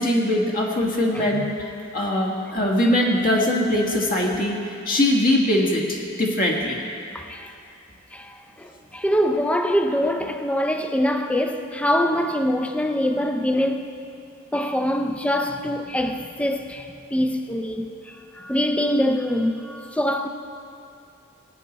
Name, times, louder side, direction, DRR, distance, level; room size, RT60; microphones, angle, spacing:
voice 1, 0.0-1.5 1.9-4.6 4.8-6.8, left 1 dB, 40° left, 1.6 m, -21 dB
voice 2, 1.1-1.6 7.1-7.5 8.1-13.9 14.5-20.3, equal, 5° left, 0.5 m, -24 dB
16.5 x 9.6 x 4.1 m
head